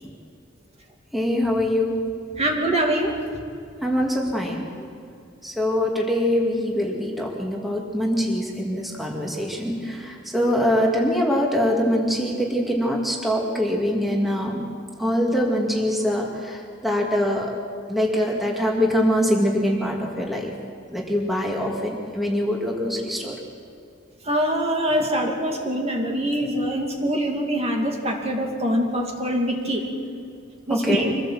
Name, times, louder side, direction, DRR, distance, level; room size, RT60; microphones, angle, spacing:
voice 1, 1.1-2.0 3.8-4.9 5.4-14.7 15.0-17.5 17.9-20.5 20.9-23.4 30.7-31.1, equal, ahead, -1 dB, 2.3 m, -23 dB
voice 2, 2.4-3.2 24.2-29.8 30.7-31.1, equal, 35° right, 1 dB, 2.5 m, -24 dB
25.0 x 16.5 x 7.6 m, 2.5 s
head